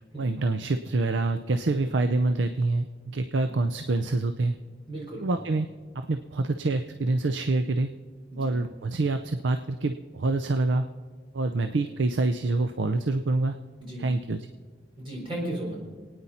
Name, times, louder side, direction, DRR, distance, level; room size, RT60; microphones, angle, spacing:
voice 1, 0.2-4.5 5.2-7.9 8.4-10.9 11.3-13.6 14.0-14.5, right 2 dB, 85° right, 8 dB, 0.6 m, -26 dB
voice 2, 4.9-5.3 8.3-8.6 13.8-14.1 15.0-15.8, right 1 dB, 30° right, -3 dB, 4.3 m, -35 dB
27.0 x 9.5 x 4.3 m, 1.5 s
head